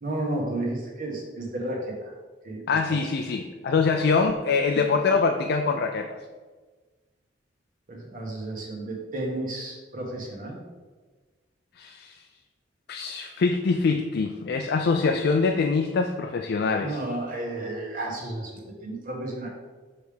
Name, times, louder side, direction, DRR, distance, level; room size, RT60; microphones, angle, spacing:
voice 1, 0.0-2.1 2.4-2.6 2.9-3.0 7.9-10.6 16.8-19.5, right 1 dB, 50° right, -1 dB, 1.2 m, -32 dB
voice 2, 2.7-6.2 11.8-12.2 12.9-17.0, left 4 dB, 60° left, 4 dB, 0.4 m, -24 dB
6.3 x 3.4 x 5.0 m, 1.4 s
head